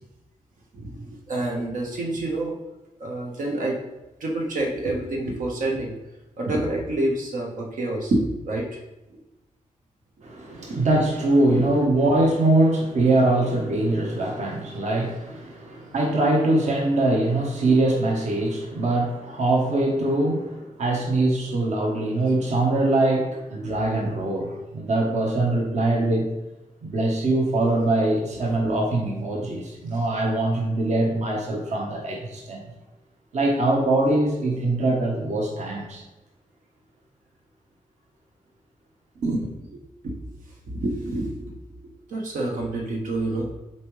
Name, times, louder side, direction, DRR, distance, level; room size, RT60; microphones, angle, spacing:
voice 1, 0.7-2.6 3.0-3.8 4.2-5.9 6.4-8.7 9.1-9.2 10.5-10.8 40.0-40.2 40.7-41.3 41.8-43.5, right 2 dB, 80° right, 0 dB, 1.2 m, -27 dB
voice 2, 10.2-26.3 26.8-32.6 33.3-36.0 39.2-39.5, right 2 dB, 60° right, 0 dB, 1.1 m, -23 dB
7.2 x 4.3 x 3.2 m, 1.0 s
wide cardioid pair, 155°, 13 cm